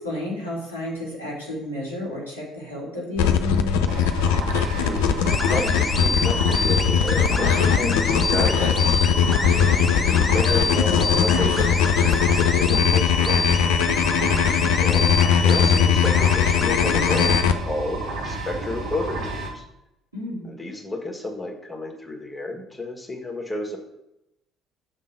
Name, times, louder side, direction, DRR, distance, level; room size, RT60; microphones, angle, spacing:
voice 1, 0.0-3.9 14.2-14.7 20.1-20.5, left 1 dB, 90° right, -7 dB, 1.8 m, -32 dB
sound 1, 3.2-17.5, left 8 dB, 65° left, 0.4 m, -20 dB
sound 2, 3.9-19.5, right 2 dB, 55° right, 1.1 m, -31 dB
sound 3, 5.3-17.4, left 3 dB, 30° left, 0.6 m, -27 dB
voice 2, 5.4-9.0 9.9-13.8 14.8-17.4 17.7-19.6 20.4-23.8, left 2 dB, 5° left, 0 dB, 1.6 m, -31 dB
6.5 x 3.7 x 5.7 m, 0.88 s
figure-of-eight pair, 50°, 0 cm